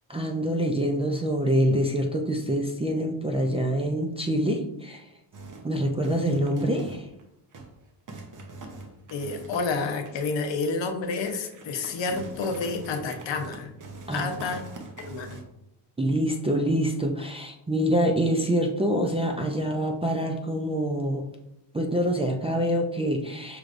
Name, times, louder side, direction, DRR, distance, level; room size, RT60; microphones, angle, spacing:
voice 1, 0.1-5.1 5.6-7.1 14.1-14.5 16.0-21.3 21.7-23.6, equal, 15° right, 0 dB, 0.3 m, -26 dB
sound 1, 5.3-5.7 6.0-7.2 7.5-7.8 8.1-10.4 10.8-10.9 11.2-15.4, right 2 dB, 40° right, 0.8 m, -43 dB
voice 2, 9.1-13.7 14.1-14.6 15.1-15.4, left 4 dB, 70° left, 6 dB, 0.8 m, -29 dB
6.1 x 3.2 x 2.5 m, 0.84 s
cardioid pair, 120°, 47 cm